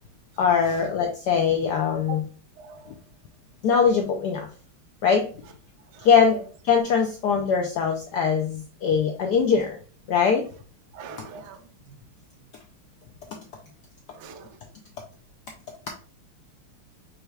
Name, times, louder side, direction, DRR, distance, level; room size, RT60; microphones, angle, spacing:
voice 1, 0.4-2.2 3.6-4.5 5.0-5.3 6.0-6.4 6.6-9.8 10.1-10.5, left 6 dB, 80° left, 2 dB, 0.9 m, -21 dB
voice 2, 10.9-11.6 14.1-14.5, right 6 dB, 70° right, 5 dB, 1.0 m, -40 dB
5.6 x 2.3 x 3.2 m, 0.40 s
omnidirectional pair, 2.3 m